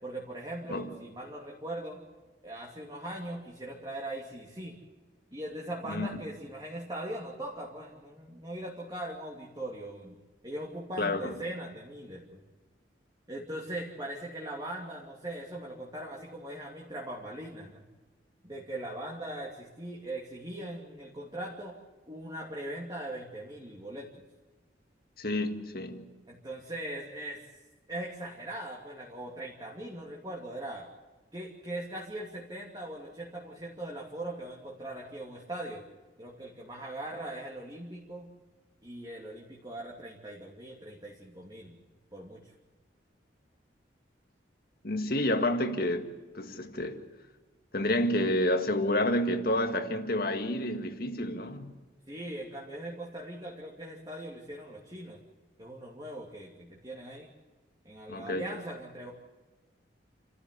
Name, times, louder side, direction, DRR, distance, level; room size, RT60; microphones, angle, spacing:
voice 1, 0.0-2.0 2.4-4.7 5.3-10.2 10.4-12.4 13.3-17.8 18.4-21.7 22.1-24.2 26.3-27.4 27.9-30.9 31.3-35.8 36.2-38.3 38.8-41.8 42.1-42.4 52.1-55.2 55.6-57.3 57.8-59.1, right 1 dB, 20° right, 2.7 m, -40 dB
voice 2, 11.0-11.4 25.2-26.1 44.8-47.0 47.7-51.8 58.1-58.5, left 1 dB, 50° left, 1.9 m, -29 dB
29.0 x 14.0 x 8.4 m
head